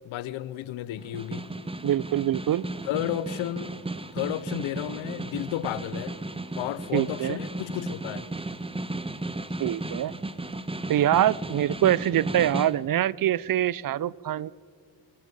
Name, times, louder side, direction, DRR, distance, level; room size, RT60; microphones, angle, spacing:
voice 1, 0.0-1.5 2.8-3.8 4.1-6.2 6.6-8.3, left 12 dB, 90° left, 0.7 m, -32 dB
Snare drum, 1.0-12.8, right 2 dB, 10° right, 1.0 m, -35 dB
voice 2, 1.8-2.7 6.9-7.4 9.6-10.1 10.9-14.5, right 12 dB, 50° right, 0.5 m, -24 dB
28.5 x 17.5 x 5.4 m
cardioid pair, 70°, 46 cm